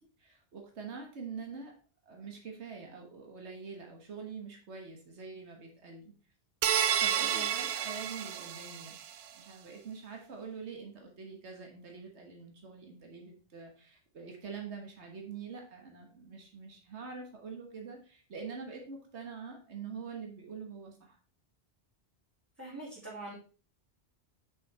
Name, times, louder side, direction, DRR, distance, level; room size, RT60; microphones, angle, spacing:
voice 1, 0.2-1.7 2.0-6.1 7.0-9.0 9.3-21.2, right 5 dB, 90° right, 2 dB, 1.6 m, -45 dB
sound 1, 6.6-9.1, right 9 dB, 75° right, 0.9 m, -30 dB
voice 2, 7.1-7.5 22.6-23.3, right 2 dB, 15° right, -8 dB, 2.5 m, -43 dB
6.1 x 5.6 x 4.2 m, 0.38 s
omnidirectional pair, 1.1 m